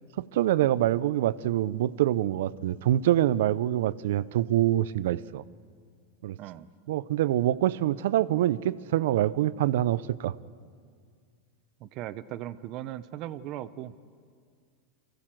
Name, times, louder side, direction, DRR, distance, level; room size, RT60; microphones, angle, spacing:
voice 1, 0.2-5.4 6.2-6.4 6.9-10.3, right 13 dB, 75° right, 18 dB, 0.5 m, -25 dB
voice 2, 11.8-13.9, right 13 dB, 45° right, 14 dB, 0.8 m, -38 dB
23.5 x 15.5 x 7.6 m, 2.1 s
supercardioid pair, 135°, 0 cm